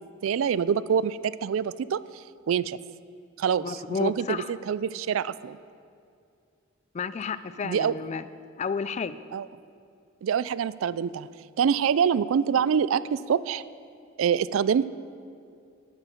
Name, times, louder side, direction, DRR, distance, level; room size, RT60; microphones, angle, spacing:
voice 1, 0.2-2.0 2.5-2.8 3.4-5.6 7.6-7.9 9.3-9.5 10.2-11.3 11.6-13.6 14.2-14.9, right 7 dB, 90° right, 18 dB, 0.3 m, -25 dB
voice 2, 3.6-4.5 6.9-8.2 8.6-9.2, left 5 dB, 35° left, 14 dB, 0.4 m, -31 dB
9.1 x 8.8 x 7.0 m, 2.4 s
head